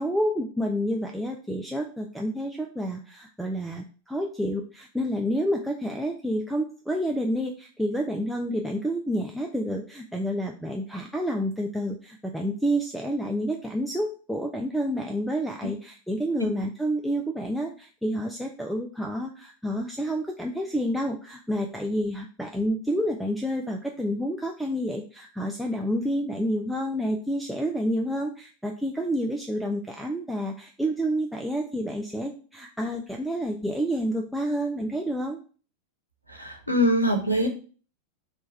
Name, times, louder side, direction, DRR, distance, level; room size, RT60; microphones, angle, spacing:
voice 1, 0.0-35.4, equal, ahead, 0 dB, 0.4 m, -29 dB
voice 2, 36.3-37.5, equal, 85° left, 4 dB, 0.6 m, -23 dB
3.2 x 2.2 x 4.0 m, 0.39 s
figure-of-eight pair, 90°, 0 cm